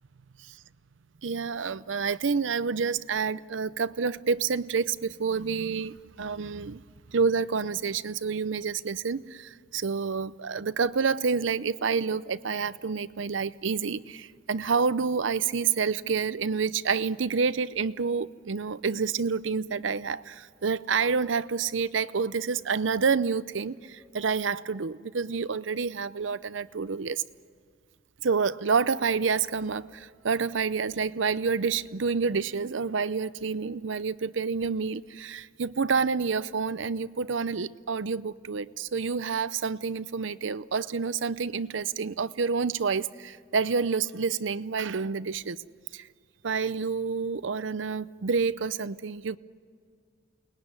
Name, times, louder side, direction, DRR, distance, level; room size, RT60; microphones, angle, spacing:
voice 1, 1.2-6.8 7.1-27.2 28.2-45.6 45.9-46.1 46.4-49.4, right 5 dB, 80° right, 0.7 m, -28 dB
29.0 x 20.5 x 9.7 m
head